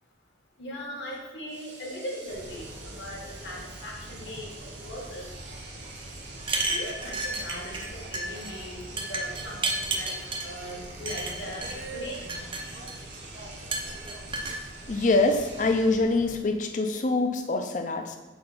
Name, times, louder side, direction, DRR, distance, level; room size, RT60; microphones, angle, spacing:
voice 1, 0.6-4.5 4.8-5.3 6.7-10.1 10.4-12.3, equal, 75° left, -2 dB, 1.5 m, -39 dB
Engine / Domestic sounds home sounds, 1.1-1.2 1.5-16.1, right 3 dB, 75° right, 1.3 m, -47 dB
sound 1, 2.3-16.3, right 1 dB, 50° right, 0.9 m, -44 dB
sound 2, 6.4-7.9 8.1-8.5 9.0-10.5 11.1-11.7 12.1-13.2 13.7-14.6, right 3 dB, 30° right, 0.5 m, -31 dB
voice 2, 14.9-18.2, left 2 dB, 40° left, 6 dB, 0.5 m, -25 dB
4.5 x 4.2 x 5.5 m, 1.2 s
head